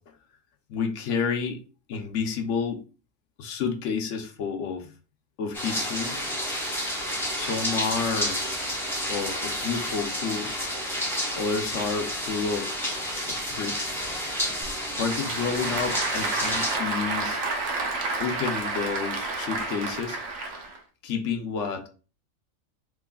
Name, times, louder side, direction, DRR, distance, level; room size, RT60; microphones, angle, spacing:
voice 1, 0.7-1.6 1.9-2.8 3.4-4.9 5.4-6.2 7.3-8.4 9.1-10.6 11.4-12.7 13.3-14.0 15.0-17.4 18.2-20.2 21.0-21.9, left 5 dB, 70° left, 5 dB, 1.0 m, -30 dB
sound 1, 5.5-16.8, equal, ahead, 0.8 m, -30 dB
Applause / Crowd, 14.6-20.8, right 3 dB, 85° right, 1.1 m, -30 dB
3.5 x 3.1 x 2.2 m, 0.37 s
omnidirectional pair, 1.3 m